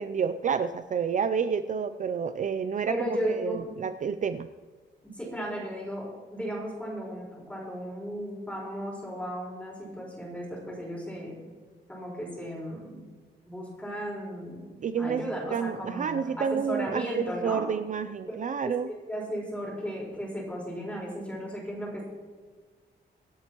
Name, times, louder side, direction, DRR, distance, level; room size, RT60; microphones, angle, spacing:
voice 1, 0.0-4.5 14.8-15.2 15.5-17.1 17.4-18.9, right 6 dB, 45° right, 10 dB, 0.4 m, -29 dB
voice 2, 2.9-3.7 5.1-11.4 11.9-13.0 13.5-17.7 18.3-18.4 18.6-22.1, equal, 5° left, -4 dB, 4.5 m, -35 dB
25.5 x 8.8 x 3.0 m, 1.5 s
wide cardioid pair, 180°, 19 cm